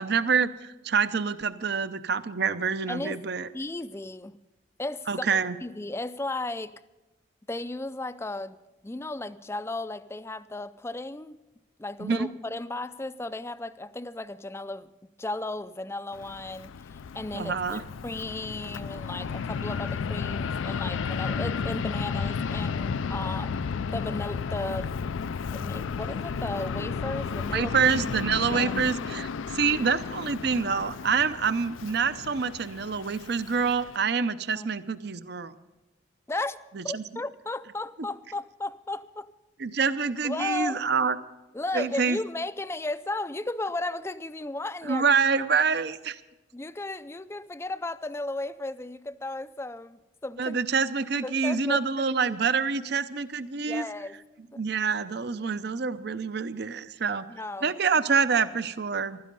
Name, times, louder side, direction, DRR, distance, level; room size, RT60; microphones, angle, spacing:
voice 1, 0.0-3.5 5.1-5.6 12.0-12.3 17.3-17.8 27.5-35.5 36.8-37.0 39.6-41.1 41.7-42.2 44.8-46.2 50.4-53.8 54.6-57.3 57.6-59.2, right 5 dB, 55° right, 0.6 m, -26 dB
voice 2, 2.9-3.2 3.5-4.4 4.8-6.7 7.5-8.6 8.8-11.4 11.8-14.9 15.2-25.0 25.5-27.7 28.5-28.7 34.5-34.7 36.3-39.3 40.2-40.8 41.5-45.0 46.5-50.6 51.2-52.4 53.7-54.2 54.5-54.6 57.3-57.7, left 2 dB, 15° left, 0.4 m, -35 dB
Fixed-wing aircraft airplane, 16.1-34.0, left 5 dB, 80° left, 0.4 m, -33 dB
15.5 x 12.5 x 5.4 m
head